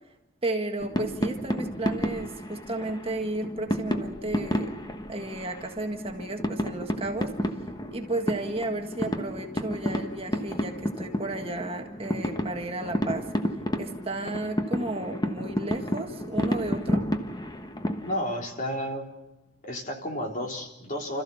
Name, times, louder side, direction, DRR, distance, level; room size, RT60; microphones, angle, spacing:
voice 1, 0.4-4.7 5.1-7.5 7.9-13.3 13.8-17.0, right 2 dB, 30° right, 4 dB, 1.7 m, -33 dB
sound 1, 0.8-18.2, equal, 20° left, 1.2 m, -31 dB
voice 2, 18.0-19.1 19.6-21.2, equal, 40° left, 2 dB, 3.6 m, -32 dB
30.0 x 14.0 x 7.1 m, 0.97 s
head